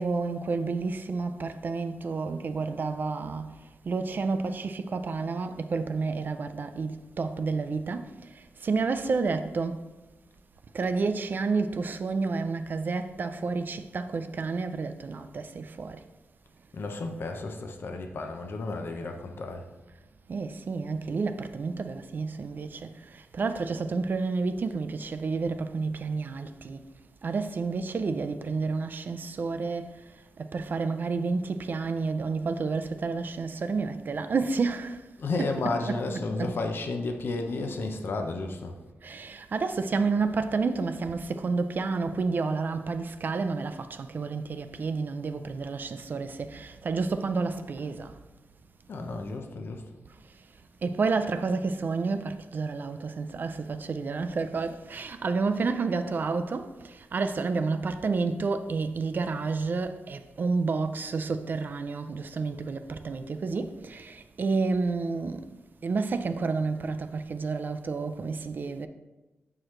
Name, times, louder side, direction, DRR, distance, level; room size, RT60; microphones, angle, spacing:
voice 1, 0.0-3.5 3.9-9.9 10.7-16.0 20.3-26.8 27.2-30.0 30.4-35.0 35.3-36.5 39.0-48.1 50.8-65.5 65.8-68.9, right 4 dB, 50° right, 0.4 m, -30 dB
voice 2, 16.7-19.6 35.2-38.8 48.9-49.8, left 3 dB, 60° left, 0.7 m, -32 dB
7.4 x 4.8 x 3.1 m
wide cardioid pair, 125°, 4 cm